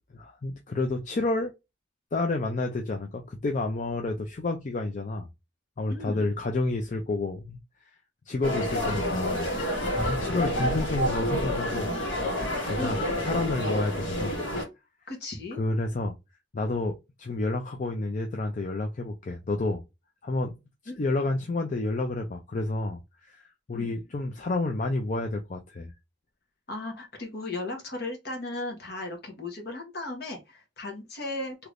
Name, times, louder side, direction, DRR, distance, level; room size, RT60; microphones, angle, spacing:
voice 1, 0.1-1.5 2.1-5.3 5.8-7.6 8.3-11.9 12.7-14.4 15.6-16.2 16.5-19.8 20.2-20.6 21.0-25.9, left 2 dB, 40° left, 0.4 m, -30 dB
voice 2, 5.9-6.3 12.8-13.0 15.1-15.6 20.9-21.1 23.7-23.9 26.7-31.6, left 2 dB, 55° left, 1.2 m, -36 dB
sound 1, 8.4-14.6, equal, 80° left, 1.6 m, -29 dB
3.3 x 2.9 x 2.5 m
head